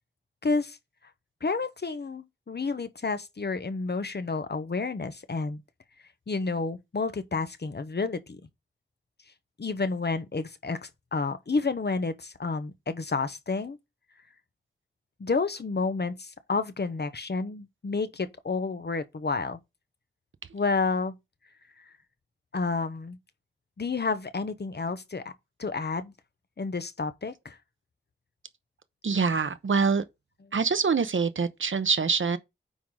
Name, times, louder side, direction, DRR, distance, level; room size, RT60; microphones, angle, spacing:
voice 1, 0.4-0.8 1.4-5.6 6.3-8.4 9.6-13.8 15.2-19.6 20.5-21.1 21.8-21.9 22.5-23.2 23.8-25.3 25.6-26.1 26.6-27.6, left 4 dB, 55° left, 1.0 m, -30 dB
voice 2, 29.0-30.0 30.5-32.4, right 5 dB, 80° right, 1.0 m, -25 dB
9.3 x 4.0 x 4.9 m
wide cardioid pair, 70°, 20 cm